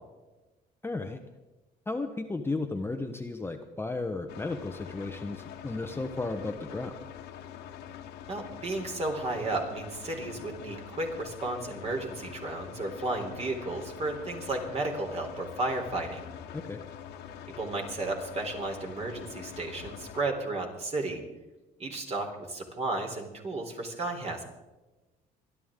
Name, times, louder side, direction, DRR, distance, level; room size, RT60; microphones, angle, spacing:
voice 1, 0.8-1.2 1.9-7.0 16.5-16.8, left 3 dB, 15° left, 5 dB, 0.9 m, -34 dB
sound 1, 4.3-20.2, left 9 dB, 85° left, 1.6 m, -45 dB
voice 2, 8.3-16.2 17.6-21.2 21.8-24.4, right 2 dB, 40° right, 2 dB, 3.5 m, -33 dB
25.5 x 11.0 x 3.7 m, 1.1 s
cardioid pair, 110°, 17 cm